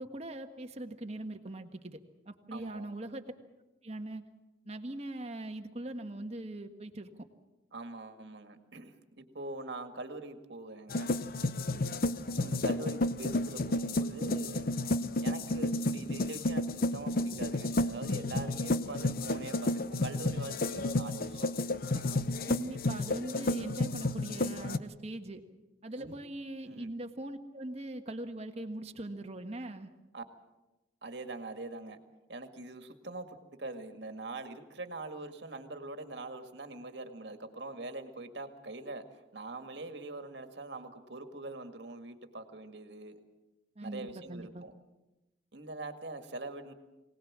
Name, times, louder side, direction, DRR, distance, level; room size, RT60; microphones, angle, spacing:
voice 1, 0.0-2.0 2.3-3.2 3.8-4.2 4.6-7.2 22.5-25.4 25.8-29.9 43.8-44.6, right 1 dB, 35° right, 6 dB, 1.5 m, -41 dB
voice 2, 2.5-3.0 7.7-11.2 12.4-14.7 15.2-21.5 21.8-22.2 25.9-26.2 26.6-26.9 30.1-30.2 31.0-32.0 32.3-43.2 43.8-44.7 45.5-46.7, right 2 dB, 65° right, 7 dB, 2.0 m, -43 dB
sound 1, 10.9-24.8, left 2 dB, 50° left, 0.7 m, -31 dB
24.0 x 18.5 x 7.4 m, 1.0 s
head